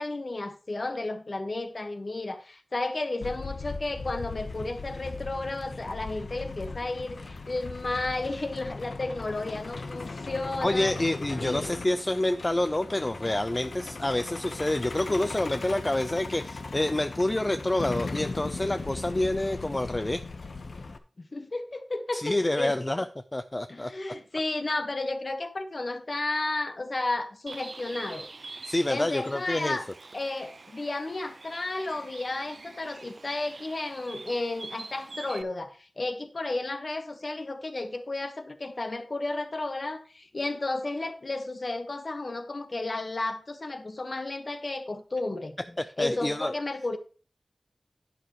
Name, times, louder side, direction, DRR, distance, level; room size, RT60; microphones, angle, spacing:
voice 1, 0.0-10.9 11.4-11.7 21.3-22.8 23.7-28.3 28.9-29.9 30.1-45.5 46.0-47.0, left 2 dB, 50° left, 1.3 m, -33 dB
Truck, 3.2-21.0, left 3 dB, 75° left, 0.9 m, -38 dB
voice 2, 10.6-20.2 22.1-23.1 23.3-23.9 28.7-29.8 45.8-46.5, left 1 dB, 25° left, 0.5 m, -27 dB
Bird, 27.5-35.4, right 3 dB, 60° right, 0.6 m, -45 dB
11.0 x 9.2 x 3.0 m
wide cardioid pair, 65°, 0 cm